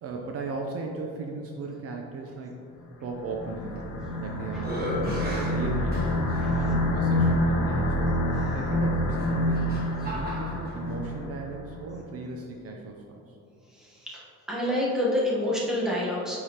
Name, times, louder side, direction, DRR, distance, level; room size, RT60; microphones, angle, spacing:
voice 1, 0.0-2.5 3.0-3.9 4.2-4.9 5.2-6.2 6.5-8.2 8.5-9.8 10.1-13.4, right 3 dB, 50° right, 1 dB, 0.6 m, -37 dB
sound 1, 3.0-11.7, left 1 dB, 50° left, 1.1 m, -27 dB
sound 2, 3.8-4.2 4.6-6.4 7.2-7.3 9.1-10.8, equal, 30° right, 1.3 m, -35 dB
voice 2, 13.8-16.4, left 1 dB, ahead, -6 dB, 1.1 m, -28 dB
8.5 x 4.8 x 2.8 m, 2.5 s
cardioid pair, 170°, 31 cm